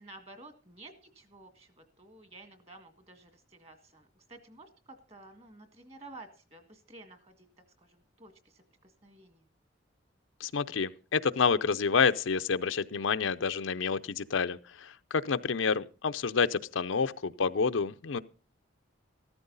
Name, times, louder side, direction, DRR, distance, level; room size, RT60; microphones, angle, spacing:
voice 1, 0.0-7.5 7.8-9.4, right 2 dB, 30° right, 1.9 m, -52 dB
voice 2, 10.4-18.2, left 5 dB, 80° left, 0.6 m, -29 dB
14.5 x 13.5 x 4.0 m
head